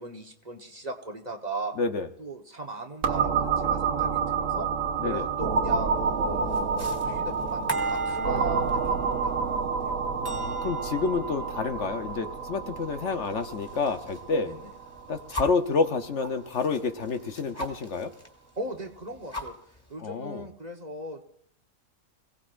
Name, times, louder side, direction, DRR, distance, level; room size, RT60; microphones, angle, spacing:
voice 1, 0.0-1.8 2.2-4.7 5.0-9.6 14.4-14.6 18.6-19.5 19.9-21.2, right 2 dB, 35° right, 3 dB, 1.2 m, -38 dB
voice 2, 1.8-2.1 5.0-5.3 10.3-14.5 15.1-18.1 20.0-20.4, left 4 dB, 60° left, 7 dB, 1.1 m, -29 dB
sound 1, 3.0-16.6, right 5 dB, 65° right, 1.5 m, -29 dB
sound 2, 5.8-14.3 14.6-15.7 16.2-18.3 18.6-18.7 19.0-19.9, right 2 dB, 10° left, 2.3 m, -38 dB
27.0 x 17.0 x 2.5 m, 0.63 s
omnidirectional pair, 1.4 m